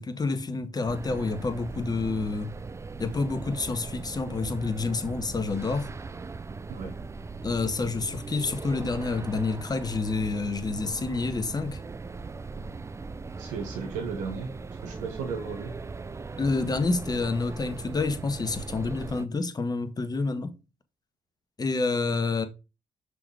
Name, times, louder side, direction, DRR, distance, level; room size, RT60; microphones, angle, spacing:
voice 1, 0.0-2.5 3.0-5.9 7.4-11.8 16.4-20.5 21.6-22.4, left 3 dB, 30° left, 1.3 m, -28 dB
sound 1, 0.8-19.3, right 4 dB, 25° right, 0.4 m, -39 dB
voice 2, 13.4-14.5 14.8-15.7, right 5 dB, 80° right, 1.2 m, -35 dB
6.0 x 3.9 x 4.7 m
supercardioid pair, 55°, 12 cm